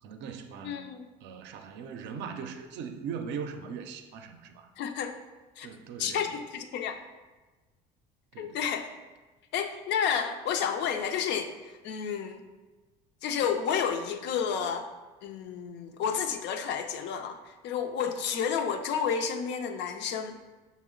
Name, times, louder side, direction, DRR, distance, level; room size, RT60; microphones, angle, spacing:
voice 1, 0.0-0.9 1.2-4.7 5.6-6.4 8.3-8.6, right 6 dB, 65° right, 7 dB, 0.5 m, -40 dB
voice 2, 0.6-1.1 4.8-5.1 5.6-5.7 6.0-7.0 8.4-8.9 9.5-11.5 11.8-12.4 13.2-14.9 15.2-20.4, left 7 dB, 60° left, 6 dB, 0.5 m, -30 dB
6.1 x 2.0 x 3.7 m, 1.2 s
supercardioid pair, 85°, 20 cm